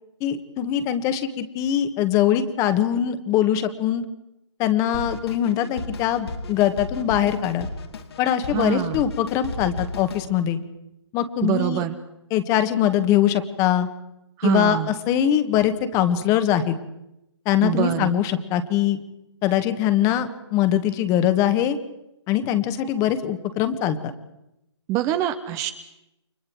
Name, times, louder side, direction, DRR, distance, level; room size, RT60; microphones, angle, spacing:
voice 1, 0.2-4.0 4.6-7.7 8.2-10.6 11.1-11.8 12.3-13.9 14.4-16.7 17.4-19.0 19.4-21.8 22.3-24.1, left 10 dB, 20° left, 10 dB, 1.6 m, -22 dB
Drum kit, 4.9-10.3, left 3 dB, 60° left, 2.9 m, -34 dB
voice 2, 8.5-9.0 11.4-12.0 14.4-14.9 17.6-18.1 24.9-25.7, right 13 dB, 20° right, 10 dB, 0.9 m, -24 dB
29.5 x 24.5 x 4.7 m, 0.87 s
figure-of-eight pair, 140°, 15 cm